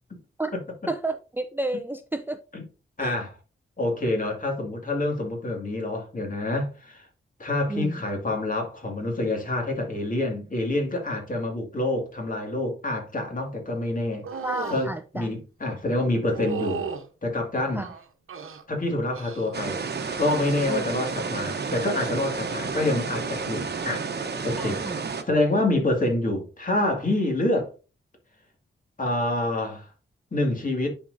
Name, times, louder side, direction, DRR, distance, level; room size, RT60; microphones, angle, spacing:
voice 1, 0.9-2.4 3.0-3.1 7.7-8.0 14.4-15.3 17.7-17.9 20.7-20.8 24.6-24.9, right 2 dB, 10° right, 0.5 m, -31 dB
voice 2, 3.0-3.4 3.8-7.1 7.4-14.2 14.7-16.8 17.2-17.9 18.7-19.8 20.2-24.1 24.4-25.0 25.3-27.7 29.0-29.9 30.3-30.9, left 2 dB, 40° left, 2.2 m, -27 dB
sound 1, 14.2-14.9 16.3-17.1 17.8-18.6 19.1-19.6 19.9-20.4 21.9-22.1, right 6 dB, 85° right, 1.0 m, -34 dB
sound 2, 19.5-25.2, right 4 dB, 50° right, 0.9 m, -31 dB
10.5 x 4.5 x 2.7 m
wide cardioid pair, 95°, 21 cm